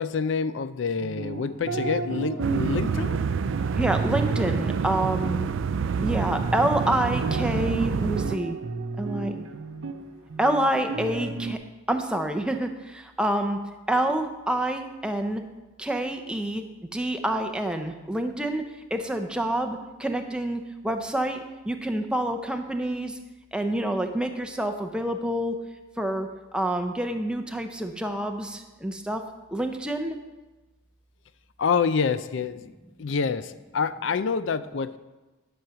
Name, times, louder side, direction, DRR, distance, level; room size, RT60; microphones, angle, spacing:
voice 1, 0.0-3.2 31.6-32.7 33.0-35.0, left 5 dB, 60° left, 14 dB, 0.4 m, -27 dB
sound 1, 1.0-11.5, right 3 dB, 80° right, 0.7 m, -34 dB
sound 2, 2.4-8.4, right 6 dB, 60° right, 0.3 m, -27 dB
voice 2, 3.8-5.5 6.0-8.6 9.0-9.4 10.4-11.6 11.9-13.6 13.9-15.4 15.8-16.6 16.9-18.6 18.9-23.2 23.5-25.6 26.0-29.2 29.5-30.2, right 1 dB, 5° right, 5 dB, 0.6 m, -27 dB
10.5 x 6.3 x 5.7 m, 1.1 s
head